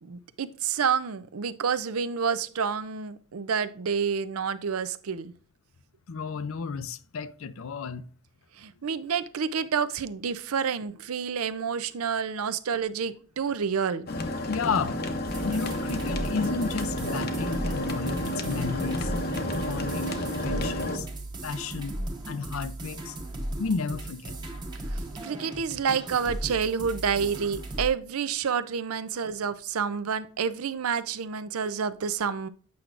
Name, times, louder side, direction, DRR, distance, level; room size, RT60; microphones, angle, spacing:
voice 1, 0.0-5.3 8.6-14.1 24.9-32.5, right 6 dB, 90° right, 0.5 m, -29 dB
voice 2, 6.1-8.0 14.5-15.0 15.4-19.1 19.6-20.1 20.4-21.1 21.4-22.0 22.3-23.2 23.6-24.4, left 5 dB, 75° left, 0.5 m, -32 dB
sound 1, 14.1-21.0, left 1 dB, 45° left, 0.8 m, -31 dB
sound 2, 15.3-27.9, right 1 dB, 20° right, 1.0 m, -36 dB
8.4 x 5.9 x 2.5 m
head